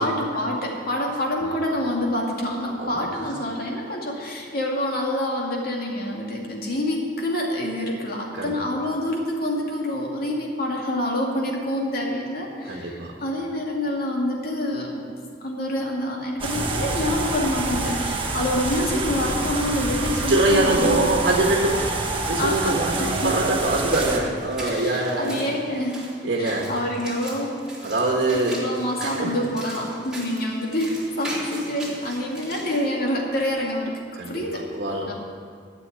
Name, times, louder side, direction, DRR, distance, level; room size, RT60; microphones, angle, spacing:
voice 1, 0.0-15.0 15.4-21.1 22.4-23.3 24.6-26.1 26.4-27.6 28.3-34.0 34.3-34.6 35.1-35.2, left 1 dB, 55° left, -1 dB, 2.5 m, -27 dB
voice 2, 2.8-3.2 8.3-8.5 12.6-13.1 20.3-25.4 26.2-26.7 27.8-28.6 29.0-29.4 34.2-34.4 34.7-35.1, right 2 dB, 60° right, -1 dB, 1.6 m, -24 dB
sound 1, 16.4-24.2, right 3 dB, 30° right, 1.4 m, -27 dB
sound 2, 23.9-32.8, right 1 dB, 5° right, 3.6 m, -39 dB
12.5 x 6.9 x 10.0 m, 2.1 s
head